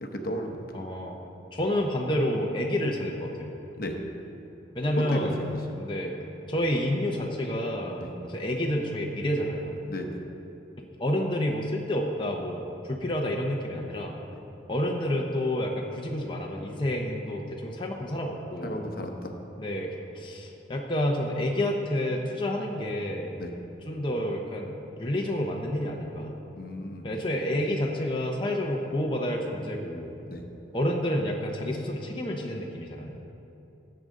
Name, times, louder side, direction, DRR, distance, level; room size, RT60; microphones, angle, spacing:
voice 1, 0.0-0.7 3.8-4.0 5.1-5.6 8.0-8.1 9.9-10.2 18.6-19.3 23.4-23.5 26.5-27.1 30.3-30.4, equal, 55° left, 3 dB, 0.9 m, -35 dB
voice 2, 0.7-1.2 1.5-3.3 4.7-5.4 5.8-6.2 6.5-9.7 11.0-14.2 14.7-18.8 19.6-23.4 23.8-26.4 27.0-30.1 30.7-33.1, left 1 dB, 25° left, 0 dB, 0.8 m, -29 dB
15.5 x 7.8 x 3.7 m, 3.0 s
head